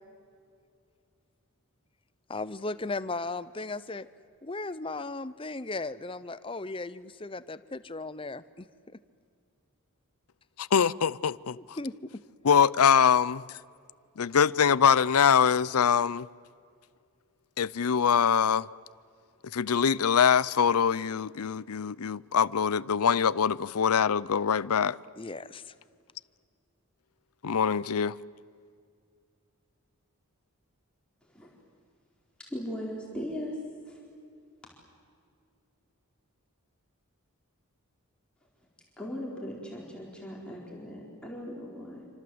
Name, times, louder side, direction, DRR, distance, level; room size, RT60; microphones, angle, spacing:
voice 1, 2.3-4.1 4.4-8.7 11.8-11.9 25.2-25.7, left 3 dB, 25° left, 0.7 m, -36 dB
voice 2, 10.6-11.8 12.4-13.6 14.2-16.3 17.6-18.7 19.4-25.0 27.4-28.2, left 7 dB, 85° left, 0.6 m, -24 dB
voice 3, 32.4-33.6 33.9-34.0 39.0-42.1, equal, 5° left, 4.4 m, -38 dB
28.0 x 26.0 x 8.0 m
head